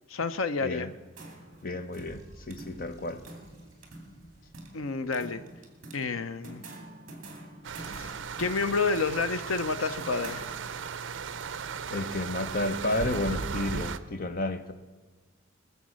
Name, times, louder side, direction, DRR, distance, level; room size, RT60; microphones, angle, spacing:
voice 1, 0.1-0.9 4.7-5.4 5.9-6.6 7.8-10.4, left 4 dB, 90° left, 0.6 m, -30 dB
sound 1, 0.9-11.0, right 1 dB, 40° right, 2.3 m, -48 dB
voice 2, 1.6-3.2 11.9-14.7, left 2 dB, 45° left, 0.9 m, -31 dB
sound 2, 1.9-6.0, right 1 dB, 20° right, 3.1 m, -55 dB
sound 3, 7.6-14.0, right 5 dB, 65° right, 0.5 m, -36 dB
20.5 x 7.0 x 6.3 m
head